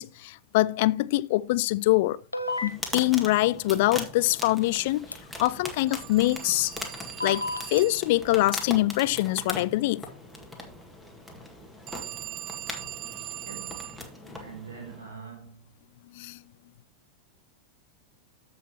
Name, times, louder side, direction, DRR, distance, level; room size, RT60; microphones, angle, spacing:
voice 1, 0.0-2.2 2.6-5.1 5.4-6.7 7.2-10.0 16.2-16.4, left 17 dB, 50° left, 0.3 m, -24 dB
sound 1, 2.3-3.0 5.1-5.2 7.2-7.8, left 2 dB, 85° left, 0.9 m, -30 dB
sound 2, 2.5-15.1, left 1 dB, ahead, 1.9 m, -40 dB
Telephone, 5.9-8.2 11.9-14.1, right 13 dB, 35° right, 0.4 m, -40 dB
voice 2, 13.5-14.0 14.3-15.8, right 5 dB, 70° right, 3.9 m, -44 dB
14.5 x 5.6 x 3.0 m
figure-of-eight pair, 90°, 0 cm